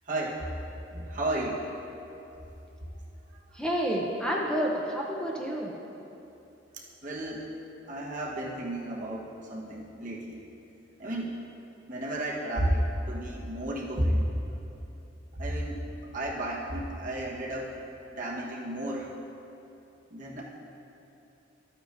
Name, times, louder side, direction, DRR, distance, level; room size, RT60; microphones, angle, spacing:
voice 1, 0.0-0.5 0.9-1.6 3.5-3.6 6.7-7.5 7.9-10.4 11.0-11.4 11.9-14.3 15.3-17.8 18.1-19.1 20.1-20.4, right 1 dB, 45° right, -4 dB, 1.3 m, -32 dB
voice 2, 3.5-5.7, equal, 5° left, -3 dB, 0.6 m, -29 dB
12.5 x 8.8 x 2.6 m, 2.9 s
head